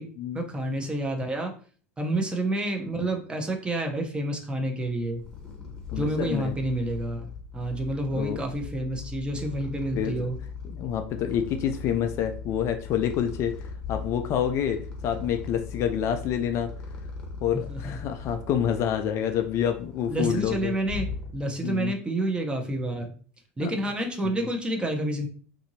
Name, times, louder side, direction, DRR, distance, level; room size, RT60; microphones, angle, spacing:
voice 1, 0.3-1.5 2.0-5.2 6.0-10.4 17.7-18.0 20.1-23.1 23.6-25.3, right 1 dB, 15° right, 3 dB, 0.7 m, -29 dB
Purr, 4.8-21.7, left 4 dB, 10° left, 1.0 m, -39 dB
voice 2, 5.9-6.5 8.1-8.4 9.9-10.3 10.6-16.7 17.4-20.7 21.6-21.9 23.6-23.7 24.4-24.5, left 9 dB, 45° left, 6 dB, 0.3 m, -28 dB
2.7 x 2.5 x 2.7 m, 0.42 s
figure-of-eight pair, 75°, 7 cm